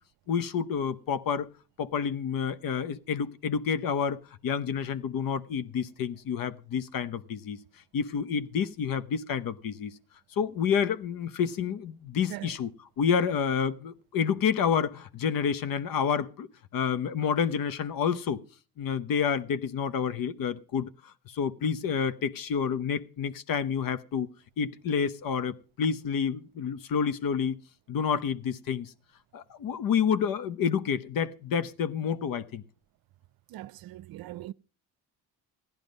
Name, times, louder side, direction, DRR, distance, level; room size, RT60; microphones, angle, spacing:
voice 1, 0.3-1.5 1.8-7.6 7.9-9.9 10.4-12.7 13.0-16.5 16.7-18.4 18.8-20.9 21.3-24.3 24.6-27.6 27.9-28.9 29.3-32.6, left 7 dB, 60° left, 1.0 m, -29 dB
voice 2, 33.5-34.5, right 15 dB, 65° right, 0.6 m, -40 dB
15.5 x 11.0 x 5.3 m
cardioid pair, 95°, 38 cm